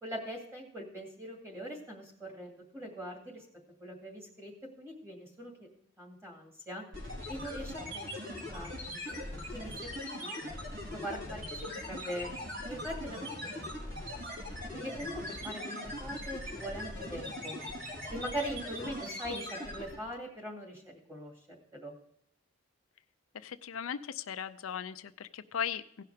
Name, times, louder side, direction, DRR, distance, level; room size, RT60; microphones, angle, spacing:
voice 1, 0.0-3.5 3.8-5.7 6.0-6.8 7.3-8.7 9.1-10.4 10.9-12.3 12.7-13.4 13.9-14.2 14.7-17.6 18.1-21.9, equal, 15° right, 0 dB, 2.2 m, -42 dB
sound 1, 6.9-20.1, left 1 dB, 60° right, 4.2 m, -40 dB
voice 2, 23.4-26.0, left 8 dB, 75° left, 11 dB, 0.4 m, -38 dB
16.5 x 5.7 x 4.9 m, 0.70 s
head